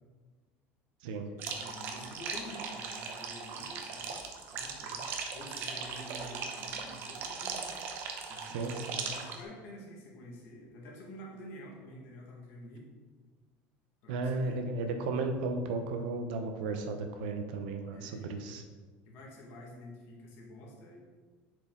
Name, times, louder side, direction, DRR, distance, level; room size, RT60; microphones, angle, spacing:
voice 1, 1.2-4.2 4.5-5.1 5.3-7.7 8.3-12.9 14.0-14.8 17.9-18.5 19.1-21.0, left 1 dB, 55° left, -2 dB, 1.8 m, -49 dB
sound 1, 1.4-9.4, right 5 dB, 50° right, 0.8 m, -39 dB
voice 2, 8.5-9.0 14.1-18.6, right 3 dB, 85° right, 6 dB, 0.8 m, -34 dB
7.1 x 4.9 x 3.8 m, 1.4 s
cardioid pair, 155°, 5 cm